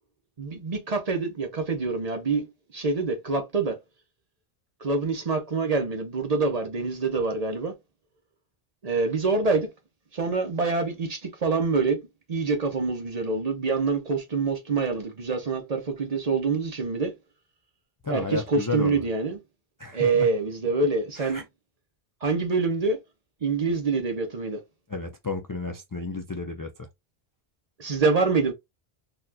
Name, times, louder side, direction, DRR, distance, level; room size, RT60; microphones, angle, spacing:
voice 1, 0.4-2.5 2.7-3.8 4.8-7.7 8.8-9.7 10.1-12.0 12.3-17.1 18.1-19.4 19.9-21.4 22.2-23.0 23.4-24.6 27.8-28.5, right 4 dB, 45° right, 0.7 m, -26 dB
voice 2, 18.0-19.1 19.8-20.3 21.2-21.4 24.9-26.9, left 3 dB, 35° left, 0.3 m, -32 dB
4.1 x 2.3 x 2.6 m
omnidirectional pair, 1.0 m